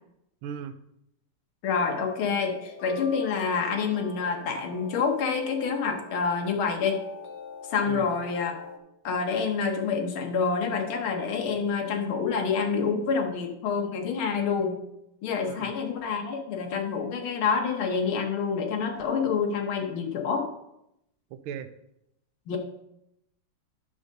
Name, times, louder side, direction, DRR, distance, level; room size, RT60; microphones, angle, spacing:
voice 1, 0.4-0.8 7.9-8.1 15.5-15.7 21.3-21.7 22.5-22.6, right 8 dB, 80° right, 10 dB, 1.5 m, -37 dB
voice 2, 1.6-7.0 7.7-8.6 9.0-14.8 15.2-20.5 22.5-22.6, left 5 dB, 75° left, 3 dB, 1.9 m, -27 dB
sound 1, 2.3-8.8, left 5 dB, 55° left, 0.7 m, -44 dB
10.0 x 3.7 x 6.5 m, 0.81 s
omnidirectional pair, 2.3 m